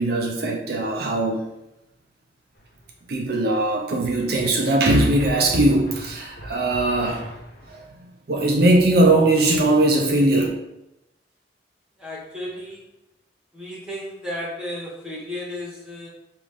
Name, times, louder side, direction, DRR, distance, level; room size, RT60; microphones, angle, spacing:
voice 1, 0.0-1.5 3.1-7.3 7.7-10.5, right 2 dB, 55° right, 1 dB, 0.5 m, -20 dB
sound 1, 2.6-3.1 5.2-7.9, equal, 55° left, 0.9 m, -40 dB
voice 2, 12.0-12.9 13.5-16.1, left 1 dB, 5° right, -5 dB, 1.2 m, -33 dB
5.0 x 2.6 x 3.5 m, 0.89 s
head